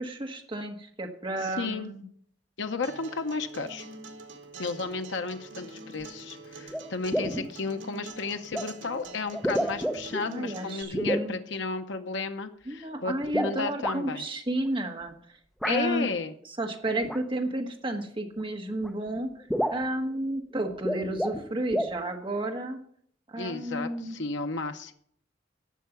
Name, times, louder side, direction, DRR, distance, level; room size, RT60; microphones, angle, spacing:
voice 1, 0.0-2.0 10.2-11.4 12.7-15.1 15.6-16.1 16.6-19.3 19.7-22.8 23.3-24.2, right 1 dB, 25° right, 3 dB, 1.5 m, -32 dB
voice 2, 1.4-1.9 2.6-3.9 4.6-14.2 15.6-16.3 23.4-24.9, left 4 dB, 70° left, 7 dB, 0.7 m, -33 dB
Acoustic guitar, 2.8-10.8, right 3 dB, 80° right, 1.7 m, -45 dB
sound 1, 6.7-6.8 7.1-7.5 8.5-8.7 9.3-10.2 10.9-11.3 13.2-14.0 15.6-15.8 17.0-17.2 18.4-18.5 18.8-18.9 19.2-19.3 19.5-19.9 20.7-21.4 21.7-22.0, equal, ahead, 0.6 m, -29 dB
11.0 x 6.7 x 6.9 m, 0.63 s
head